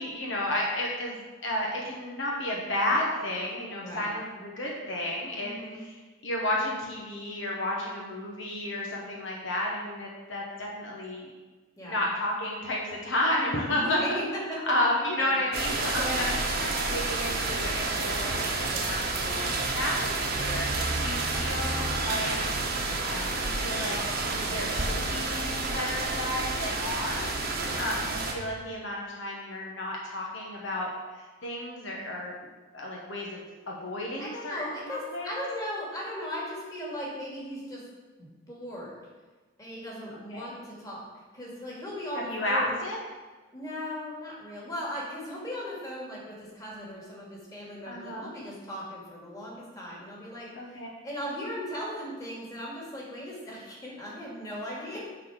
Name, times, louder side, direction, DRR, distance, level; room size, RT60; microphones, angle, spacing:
voice 1, 0.0-11.3 11.8-14.2 14.7-22.4 23.0-24.0 24.5-27.3 27.8-35.3 40.3-40.5 42.1-43.0 47.9-48.3 50.5-50.9, left 1 dB, 60° left, -2 dB, 1.2 m, -32 dB
voice 2, 3.8-4.1 5.4-5.8 11.8-12.0 13.7-14.2 14.5-14.6 15.2-15.4 15.9-16.4 18.7-18.9 31.8-32.1 34.2-37.8 38.2-39.0 39.6-41.1 41.3-42.8 43.5-50.5 51.0-55.0, equal, 15° left, -5 dB, 2.2 m, -37 dB
sound 1, 15.5-28.3, right 3 dB, 45° right, 1.2 m, -29 dB
9.4 x 4.2 x 6.3 m, 1.3 s
head